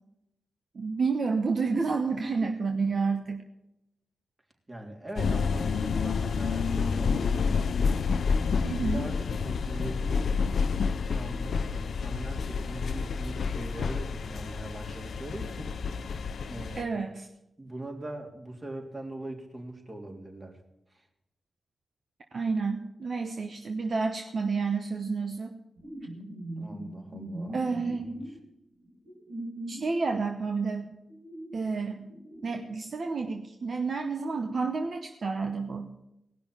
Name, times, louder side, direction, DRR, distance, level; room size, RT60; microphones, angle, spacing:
voice 1, 0.7-3.4 8.6-9.0 14.9-15.0 16.7-17.3 22.3-25.5 27.5-28.0 29.7-30.8 31.5-32.1 32.4-35.9, right 4 dB, 60° right, 5 dB, 1.0 m, -30 dB
voice 2, 4.7-7.7 8.8-10.3 11.0-15.7 16.5-17.0 17.6-20.6 20.9-21.0 26.6-27.6 27.9-28.4, right 1 dB, 30° right, 2 dB, 3.2 m, -41 dB
sound 1, 5.2-16.8, left 5 dB, 75° left, 0.5 m, -29 dB
sound 2, 25.8-28.3 28.9-29.9 31.1-32.6, right 1 dB, 85° right, 4.5 m, -40 dB
17.5 x 6.1 x 8.8 m, 0.89 s
supercardioid pair, 45°, 0 cm